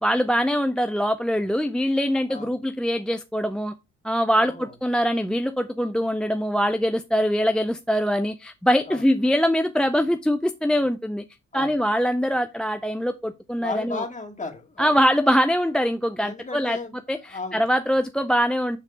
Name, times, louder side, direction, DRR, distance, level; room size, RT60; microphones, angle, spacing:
voice 1, 0.0-3.7 4.0-11.2 11.5-14.0 14.8-16.8 17.1-18.8, equal, 5° left, 0.4 m, -23 dB
voice 2, 2.3-2.6 4.4-4.7 8.9-9.0 11.5-11.8 13.6-15.0 16.2-17.6, left 3 dB, 25° left, 2.1 m, -35 dB
6.8 x 3.6 x 4.8 m
cardioid pair, 90°, 30 cm